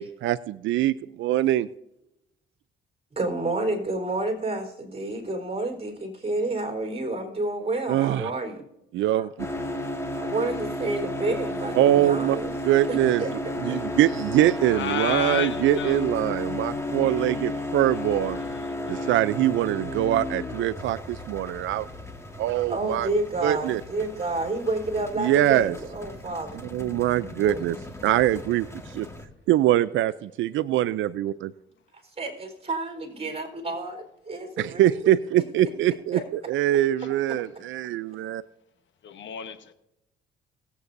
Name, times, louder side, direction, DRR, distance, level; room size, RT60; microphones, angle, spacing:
voice 1, 0.0-1.7 7.9-8.3 8.9-9.5 11.7-12.4 12.6-13.2 13.6-18.4 18.9-21.9 22.4-23.1 23.4-23.8 25.2-25.7 26.7-27.8 28.0-28.7 28.9-29.1 29.5-31.5 34.6-38.4, right 13 dB, 80° right, 15 dB, 0.4 m, -23 dB
voice 2, 3.1-8.6 9.2-9.3 10.2-12.5 12.9-13.8 22.7-26.6 27.4-27.6 32.2-34.0 34.3-35.1 36.1-36.2, right 2 dB, 30° right, 4 dB, 3.8 m, -30 dB
sound 1, 9.4-29.2, left 1 dB, 15° left, 1.6 m, -34 dB
voice 3, 14.7-16.0 17.9-19.1 39.0-39.7, left 8 dB, 70° left, 10 dB, 1.1 m, -33 dB
19.5 x 8.2 x 2.6 m, 0.86 s
cardioid pair, 90°, 20 cm